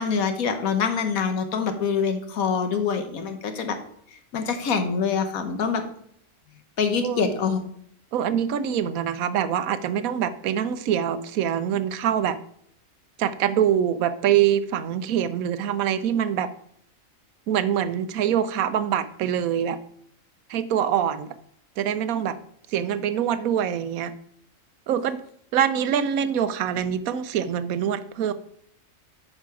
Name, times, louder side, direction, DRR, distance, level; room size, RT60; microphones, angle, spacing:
voice 1, 0.0-3.8 4.1-5.8 6.8-7.6, left 6 dB, 90° left, 7 dB, 1.5 m, -25 dB
voice 2, 8.1-12.4 13.2-16.5 17.5-19.8 20.5-21.3 21.8-22.4 22.7-24.1 24.9-25.2 25.5-28.3, right 9 dB, 90° right, 13 dB, 1.1 m, -24 dB
8.9 x 5.5 x 4.8 m, 0.69 s
omnidirectional pair, 1.4 m